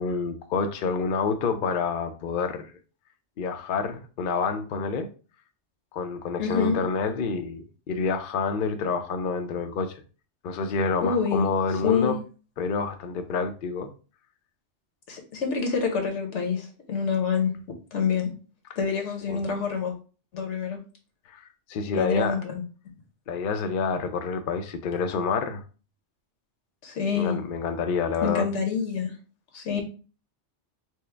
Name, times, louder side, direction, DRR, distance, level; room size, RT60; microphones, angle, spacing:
voice 1, 0.0-2.7 3.4-5.1 5.9-10.0 10.4-12.2 12.6-13.9 18.7-18.8 19.3-19.4 21.3-22.4 23.3-25.6 27.2-28.5, left 5 dB, 60° left, 0.6 m, -28 dB
voice 2, 6.4-6.8 11.0-11.5 11.8-12.2 15.1-17.5 17.9-18.3 18.8-19.9 20.3-20.8 21.9-22.6 26.8-27.4 28.2-29.1 29.5-29.8, left 6 dB, 75° left, 1.2 m, -26 dB
4.5 x 2.0 x 3.2 m
omnidirectional pair, 1.2 m